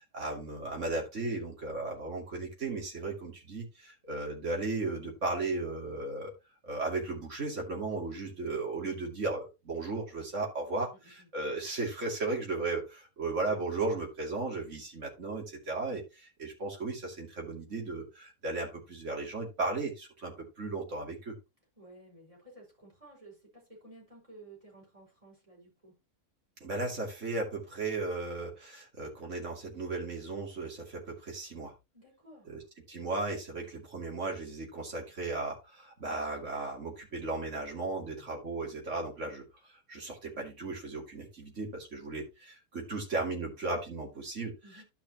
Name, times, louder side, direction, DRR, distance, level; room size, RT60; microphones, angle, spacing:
voice 1, 0.0-6.3 6.6-21.3 26.6-31.7 32.5-32.6 32.9-44.6, right 3 dB, 50° right, 0 dB, 3.0 m, -35 dB
voice 2, 10.9-11.3 21.8-25.9 31.9-32.6 38.0-38.4 44.6-44.8, right 2 dB, 20° right, -3 dB, 5.4 m, -55 dB
12.0 x 5.8 x 3.0 m, 0.25 s
omnidirectional pair, 1.6 m